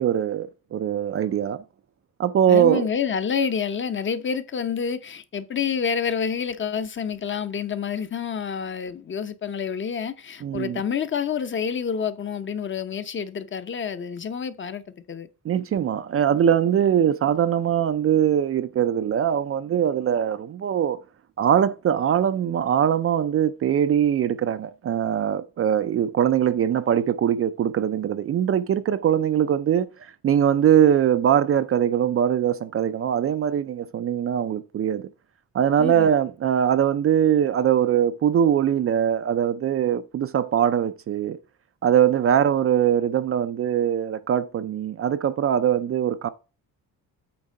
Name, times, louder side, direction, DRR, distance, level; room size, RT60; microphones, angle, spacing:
voice 1, 0.0-1.6 2.2-2.9 3.4-3.5 10.4-10.8 15.4-21.0 21.4-35.1 35.5-41.4 41.8-46.3, right 9 dB, 40° right, 0.4 m, -22 dB
voice 2, 2.5-15.3 35.8-36.1, left 7 dB, 35° left, 0.7 m, -28 dB
8.6 x 3.6 x 5.3 m
cardioid pair, 160°, 36 cm